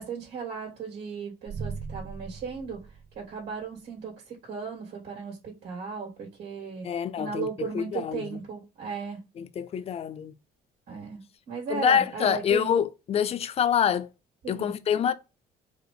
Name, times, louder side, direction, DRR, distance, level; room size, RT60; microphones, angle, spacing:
voice 1, 0.0-2.9 3.1-9.2 10.9-11.2 11.5-12.7 14.4-14.7, right 6 dB, 80° right, 2.4 m, -36 dB
sound 1, 1.5-3.7, right 5 dB, 35° right, 0.9 m, -39 dB
voice 2, 6.8-8.4 9.4-10.3 11.7-14.1 14.5-15.1, left 8 dB, 35° left, 0.4 m, -26 dB
5.1 x 2.0 x 4.7 m
cardioid pair, 110°, 17 cm